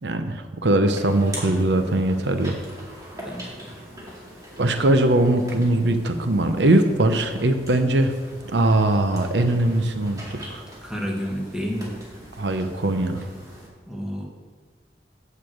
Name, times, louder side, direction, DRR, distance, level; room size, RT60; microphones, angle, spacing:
voice 1, 0.0-2.6 4.6-8.1 8.5-10.6 12.4-13.3, right 1 dB, 85° right, 7 dB, 0.8 m, -21 dB
sound 1, 0.9-13.7, right 1 dB, 20° right, 2.3 m, -42 dB
voice 2, 3.1-3.8 10.8-11.9 13.9-14.2, equal, 5° right, -1 dB, 1.3 m, -30 dB
7.1 x 6.6 x 7.7 m, 1.5 s
head